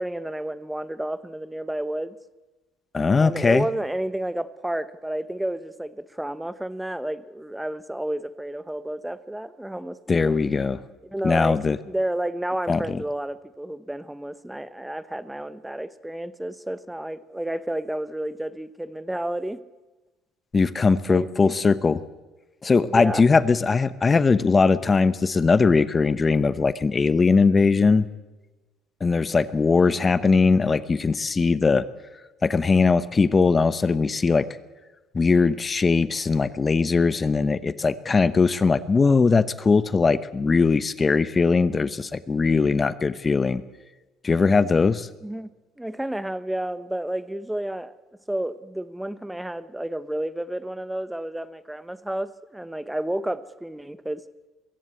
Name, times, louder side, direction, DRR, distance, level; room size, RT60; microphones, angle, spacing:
voice 1, 0.0-2.1 3.2-10.4 11.0-11.6 11.8-19.6 20.9-21.5 22.8-23.3 45.2-45.5 45.8-47.9 48.3-54.2, right 1 dB, 5° right, 14 dB, 0.9 m, -31 dB
voice 2, 2.9-3.7 10.1-10.8 11.2-11.8 12.7-13.0 20.5-22.0 22.6-28.1 29.0-31.8 32.4-34.5 35.1-43.6 44.2-45.1, left 4 dB, 30° left, 15 dB, 0.9 m, -20 dB
23.0 x 15.0 x 8.4 m, 1.2 s
supercardioid pair, 85°, 0 cm